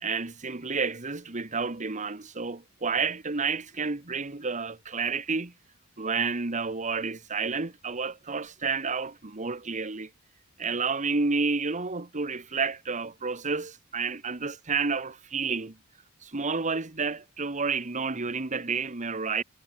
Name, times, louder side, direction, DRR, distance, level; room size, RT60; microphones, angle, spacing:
voice 1, 0.0-5.5 6.0-10.1 10.6-15.8 16.2-19.4, right 4 dB, 35° right, 1.4 m, -30 dB
head